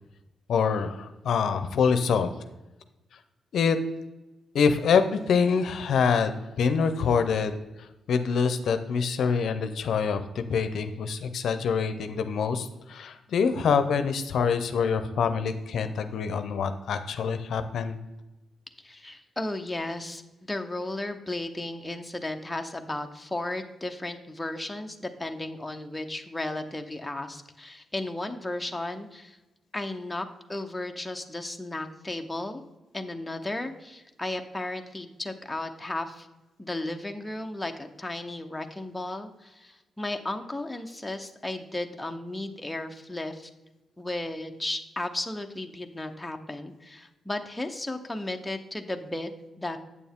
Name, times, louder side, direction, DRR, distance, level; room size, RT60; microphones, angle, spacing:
voice 1, 0.5-2.3 3.5-3.8 4.5-18.0, left 6 dB, 75° left, 9 dB, 0.6 m, -25 dB
voice 2, 18.8-29.4 29.7-32.6 32.9-36.3 36.6-43.5 44.0-49.3 49.6-49.8, left 2 dB, 10° left, 4 dB, 0.8 m, -34 dB
8.5 x 6.9 x 3.6 m, 1.0 s
cardioid pair, 85°, 0 cm